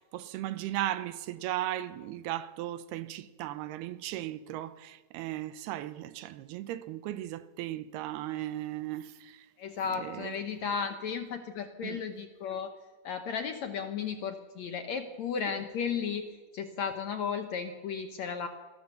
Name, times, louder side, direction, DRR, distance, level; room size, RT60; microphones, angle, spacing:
voice 1, 0.0-9.5 10.0-10.4 11.8-12.0, right 14 dB, 90° right, 2.9 m, -36 dB
voice 2, 9.6-12.8 13.0-16.3 16.5-18.5, left 6 dB, 70° left, 1.8 m, -34 dB
26.5 x 18.0 x 7.0 m
omnidirectional pair, 4.4 m